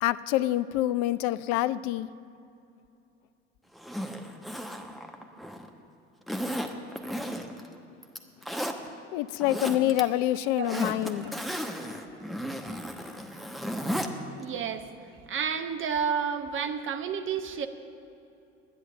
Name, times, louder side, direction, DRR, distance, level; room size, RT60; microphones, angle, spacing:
voice 1, 0.0-2.1 9.1-11.3, left 14 dB, 55° left, 16 dB, 0.5 m, -26 dB
Zipper (clothing), 3.8-5.7 6.3-7.7 8.0-8.8 9.3-10.0 10.3-14.1 14.4-14.5, equal, ahead, 0.9 m, -34 dB
voice 2, 10.4-11.0 11.2-11.3 14.4-14.9 15.2-17.7, right 7 dB, 35° right, 9 dB, 0.9 m, -31 dB
11.0 x 9.9 x 6.7 m, 2.7 s
figure-of-eight pair, 65°, 34 cm